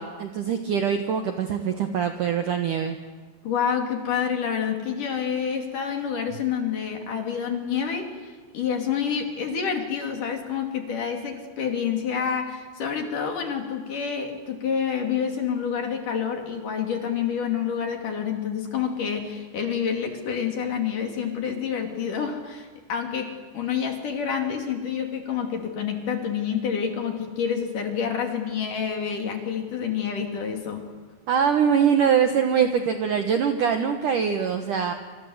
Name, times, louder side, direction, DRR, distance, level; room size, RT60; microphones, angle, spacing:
voice 1, 0.0-3.0 31.3-34.9, right 7 dB, 90° right, 6 dB, 1.8 m, -23 dB
voice 2, 3.4-30.9, left 7 dB, 45° left, 4 dB, 3.7 m, -28 dB
27.5 x 26.5 x 8.0 m, 1.4 s
omnidirectional pair, 5.8 m